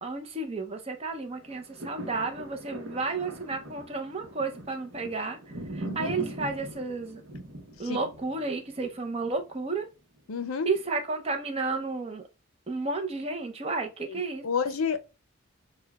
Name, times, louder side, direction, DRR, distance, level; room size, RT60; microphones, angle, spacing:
voice 1, 0.0-5.4 5.7-7.2 7.8-9.9 10.7-12.2 12.7-14.5, right 3 dB, 30° right, 0.7 m, -32 dB
sound 1, 1.4-9.7 10.2-10.3, right 1 dB, 65° right, 0.9 m, -41 dB
voice 2, 10.3-10.7 14.0-15.0, left 6 dB, 90° left, 0.6 m, -31 dB
6.6 x 2.2 x 2.3 m
head